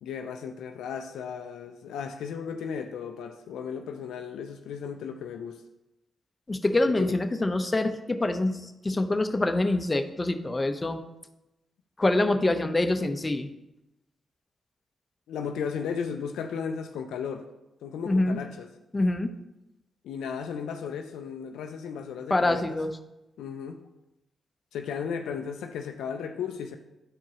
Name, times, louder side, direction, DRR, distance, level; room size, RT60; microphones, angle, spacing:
voice 1, 0.0-5.6 7.0-7.2 15.3-17.5 17.8-18.7 20.0-22.8 23.4-23.8 24.7-26.8, left 6 dB, 80° left, 6 dB, 0.4 m, -35 dB
voice 2, 6.5-11.0 12.0-13.5 18.1-18.4 18.9-19.3 22.3-23.0, left 2 dB, 30° left, 7 dB, 0.8 m, -25 dB
10.5 x 4.6 x 2.9 m, 0.93 s
supercardioid pair, 45°, 0 cm